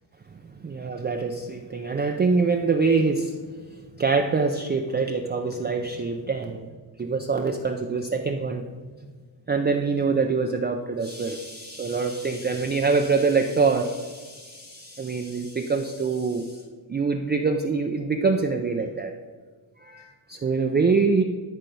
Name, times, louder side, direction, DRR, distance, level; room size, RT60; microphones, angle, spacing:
voice 1, 0.5-3.3 3.7-6.7 7.0-8.9 9.5-16.6 16.9-19.1 19.8-21.2, right 4 dB, 20° right, 4 dB, 0.4 m, -25 dB
12.5 x 4.4 x 5.3 m, 1.5 s
cardioid pair, 130°, 50 cm